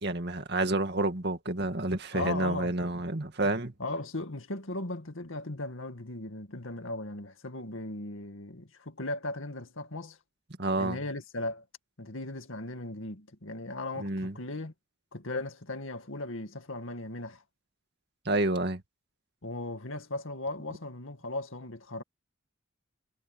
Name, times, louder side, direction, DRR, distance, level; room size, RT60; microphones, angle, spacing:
voice 1, 0.0-3.7 10.6-11.0 14.0-14.3 18.3-18.8, right 2 dB, 50° right, 2.3 m, -29 dB
voice 2, 2.1-2.7 3.8-10.2 10.8-11.6 12.0-14.7 15.1-17.4 19.4-22.0, left 2 dB, 75° left, 2.1 m, -37 dB
head